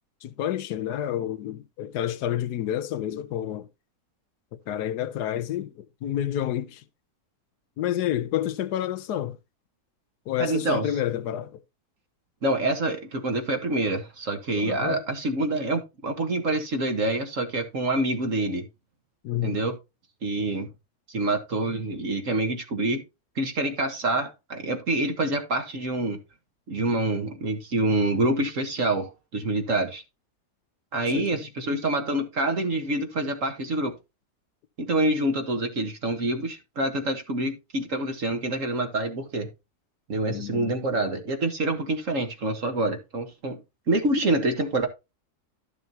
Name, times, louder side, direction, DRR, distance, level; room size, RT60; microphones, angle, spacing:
voice 1, 0.2-3.7 4.7-6.8 7.8-9.4 10.3-11.6 14.6-15.0 19.2-19.6 31.1-31.3 40.2-40.7, left 11 dB, 85° left, 1.3 m, -29 dB
voice 2, 10.4-10.9 12.4-18.7 19.4-19.7 20.2-20.7 21.1-23.0 23.3-26.2 26.7-30.0 30.9-33.9 34.8-39.5 40.1-43.6 43.9-44.9, right 2 dB, 55° right, 1.7 m, -26 dB
12.0 x 6.8 x 2.8 m
omnidirectional pair, 1.7 m